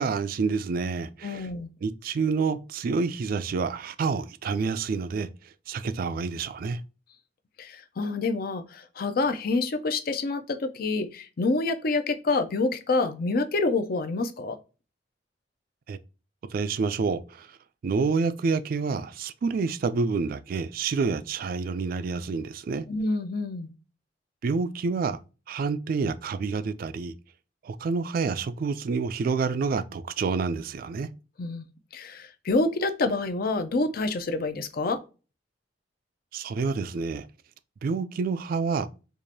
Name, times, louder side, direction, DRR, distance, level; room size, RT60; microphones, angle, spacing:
voice 1, 0.0-1.5 1.8-5.3 5.7-6.8 15.9-16.0 16.5-17.6 17.8-22.8 24.4-25.2 25.5-27.1 27.6-31.1 36.3-37.3 37.8-38.9, right 4 dB, 50° right, 0.3 m, -28 dB
voice 2, 1.2-1.7 7.6-14.6 22.9-23.7 31.4-35.0, left 3 dB, 55° left, 0.5 m, -27 dB
4.7 x 2.5 x 2.6 m
head